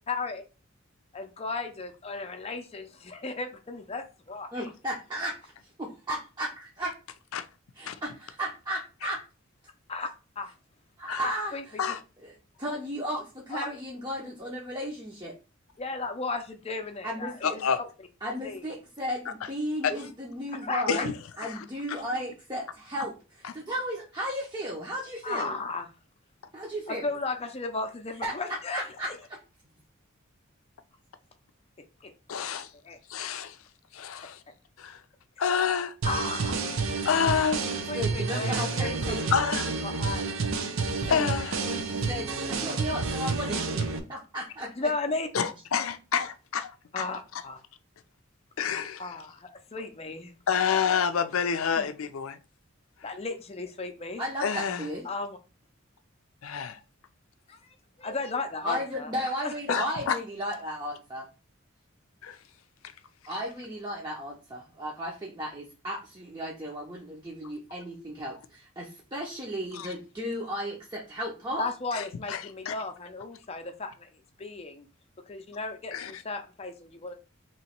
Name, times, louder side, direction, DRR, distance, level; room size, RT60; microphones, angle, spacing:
voice 1, 0.1-0.4 1.1-4.7 9.9-10.1 10.4-10.5 11.2-12.0 13.5-13.6 15.8-17.9 18.4-18.7 20.5-21.0 25.2-25.9 26.9-29.2 32.0-32.1 32.8-33.3 36.0-36.8 37.9-39.1 39.8-40.3 41.1-41.4 43.4-43.7 44.8-45.5 46.9-47.6 49.0-50.3 51.8-51.9 53.0-54.2 55.0-55.4 57.5-59.6 71.6-74.9 75.3-77.1, left 3 dB, 30° left, 0.6 m, -35 dB
voice 2, 4.5-5.5 5.8-6.9 7.7-9.2 11.0-11.6 12.2-15.3 17.0-17.5 18.2-21.1 21.4-25.6 26.5-27.1 28.2-28.3 28.7-29.1 29.6-29.8 37.9-39.2 41.0-43.8 44.1-44.9 54.2-55.1 58.6-61.3 63.3-71.6, equal, 20° right, 0.7 m, -35 dB
voice 3, 17.4-17.8 19.3-19.4 19.8-19.9 20.9-21.1 21.5-21.6 21.9-22.0 32.3-32.7 33.1-33.6 33.9-34.4 34.8-35.0 35.4-35.9 37.0-37.8 39.3-39.7 41.1-41.6 45.3-47.0 48.6-49.0 50.5-52.4 54.4-54.9 56.4-56.8 59.7-60.2 62.2-62.4 69.7-69.9 71.9-72.4 72.7-72.8 75.9-76.1, left 7 dB, 85° left, 0.5 m, -28 dB
sound 1, 36.0-44.0, right 4 dB, 70° right, 0.6 m, -30 dB
3.0 x 2.9 x 4.3 m
head